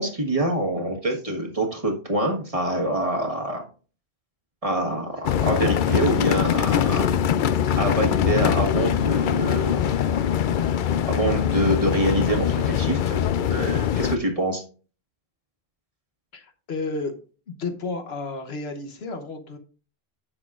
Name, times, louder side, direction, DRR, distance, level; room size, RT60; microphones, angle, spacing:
voice 1, 0.0-3.6 4.6-7.1 7.8-9.9 11.1-13.2 13.5-14.6, right 1 dB, 35° right, 2 dB, 1.5 m, -25 dB
sound 1, 5.2-14.2, left 9 dB, 60° left, 0.6 m, -22 dB
voice 2, 16.3-17.1 17.5-19.6, left 3 dB, 75° left, 6 dB, 1.2 m, -32 dB
10.0 x 7.2 x 2.5 m, 0.38 s
omnidirectional pair, 1.1 m